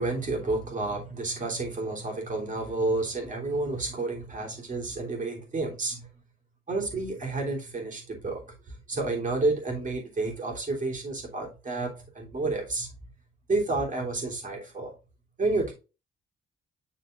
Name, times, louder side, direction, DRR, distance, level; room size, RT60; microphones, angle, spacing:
voice 1, 0.0-6.1 6.7-13.1 13.5-14.9 15.4-15.7, right 3 dB, 40° right, 3.2 m, -30 dB
7.8 x 6.6 x 2.5 m
cardioid pair, 110°, 21 cm